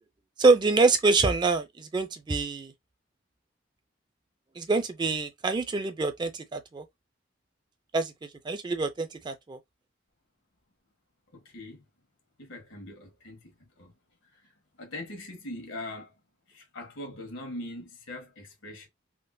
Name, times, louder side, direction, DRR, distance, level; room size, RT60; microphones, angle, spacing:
voice 1, 0.4-2.7 4.6-6.8 7.9-9.6, right 3 dB, 25° right, 0.3 m, -25 dB
voice 2, 11.3-11.9 12.4-13.9 14.3-14.5 14.8-16.1 16.5-18.9, left 1 dB, 80° left, 1.3 m, -41 dB
3.6 x 2.0 x 2.6 m
head